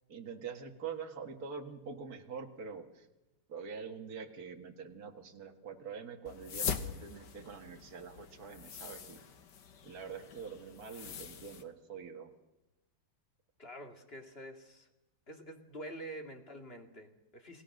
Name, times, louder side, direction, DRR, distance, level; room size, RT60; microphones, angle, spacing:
voice 1, 0.1-3.1 3.5-9.3 9.8-12.3, right 6 dB, 50° right, 3 dB, 2.3 m, -45 dB
sound 1, 6.3-11.6, left 7 dB, 60° left, 1.9 m, -42 dB
voice 2, 13.6-14.9 15.3-17.6, right 1 dB, 30° left, 4 dB, 2.3 m, -47 dB
29.0 x 19.5 x 6.6 m, 0.98 s
omnidirectional pair, 2.2 m